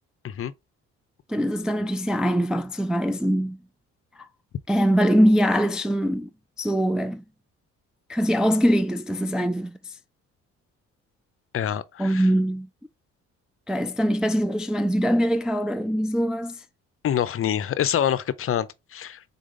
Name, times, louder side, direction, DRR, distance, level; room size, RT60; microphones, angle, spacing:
voice 1, 1.3-3.6 4.2-4.3 4.7-6.3 6.6-7.2 8.1-9.8 12.0-12.7 13.7-16.6, equal, 5° right, 0.3 m, -22 dB
voice 2, 11.5-12.3 17.0-19.2, left 10 dB, 45° left, 0.6 m, -26 dB
3.9 x 3.7 x 3.7 m
cardioid pair, 90°, 30 cm